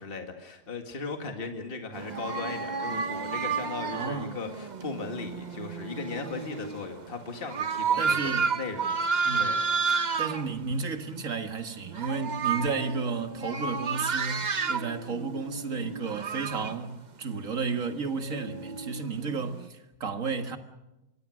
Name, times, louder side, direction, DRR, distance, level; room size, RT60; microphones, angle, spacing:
voice 1, 0.0-9.1 9.3-9.6, left 4 dB, 35° left, 2.1 m, -37 dB
sound 1, 1.9-10.5 11.1-11.3 11.7-16.7 17.8-19.7, right 5 dB, 35° right, 0.8 m, -31 dB
voice 2, 3.9-4.4 8.0-8.5 9.2-9.5 10.2-20.6, right 4 dB, 60° right, 2.1 m, -33 dB
26.0 x 22.0 x 6.3 m
omnidirectional pair, 1.6 m